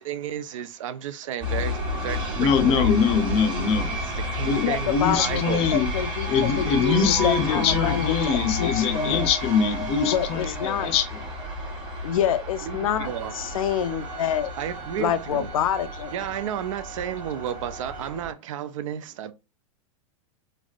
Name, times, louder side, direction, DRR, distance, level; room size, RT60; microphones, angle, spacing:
voice 1, 0.0-2.9 3.9-4.9 5.2-5.7 12.6-13.3 14.6-15.5 16.1-19.3, right 10 dB, 70° right, 0.4 m, -32 dB
sound 1, 1.4-18.3, left 2 dB, 25° right, 1.3 m, -31 dB
voice 2, 2.4-4.0 4.4-5.9 6.3-11.2, left 6 dB, 35° left, 0.6 m, -23 dB
voice 3, 4.6-5.4 5.7-9.3 10.1-10.9 12.0-14.5 15.0-16.1, left 9 dB, 85° left, 0.5 m, -27 dB
sound 2, 5.4-11.7 12.1-12.2, right 4 dB, ahead, 0.7 m, -36 dB
Bowed string instrument, 13.0-18.1, right 5 dB, 90° right, 1.1 m, -43 dB
3.3 x 2.6 x 2.4 m
hypercardioid pair, 135°, 17 cm